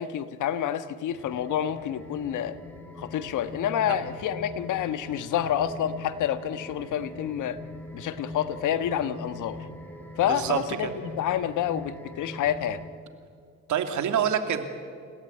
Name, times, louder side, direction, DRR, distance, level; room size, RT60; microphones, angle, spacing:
voice 1, 0.0-2.5 3.0-7.6 7.9-9.7 10.2-12.8, left 10 dB, 80° left, 12 dB, 1.5 m, -28 dB
sound 1, 1.1-12.9, left 3 dB, 5° left, 4.9 m, -42 dB
voice 2, 10.3-10.9 13.7-14.6, right 8 dB, 75° right, 8 dB, 2.7 m, -26 dB
29.0 x 17.5 x 9.5 m, 2.3 s
cardioid pair, 90°, 30 cm